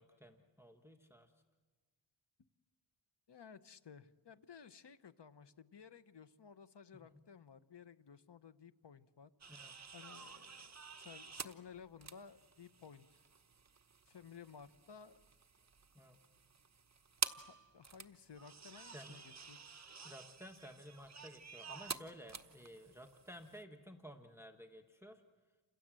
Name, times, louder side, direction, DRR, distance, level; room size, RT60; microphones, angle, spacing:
voice 1, 0.0-1.3 6.9-7.2 9.5-9.7 15.9-16.2 18.8-19.2 20.0-25.2, equal, 5° right, 6 dB, 1.3 m, -54 dB
voice 2, 3.3-9.3 9.9-10.7 11.0-13.2 14.1-15.2 17.4-19.6, left 6 dB, 55° left, 13 dB, 1.0 m, -56 dB
sound 1, 9.4-23.6, right 5 dB, 35° right, 1.0 m, -49 dB
29.0 x 26.5 x 7.7 m, 1.4 s
wide cardioid pair, 125°, 48 cm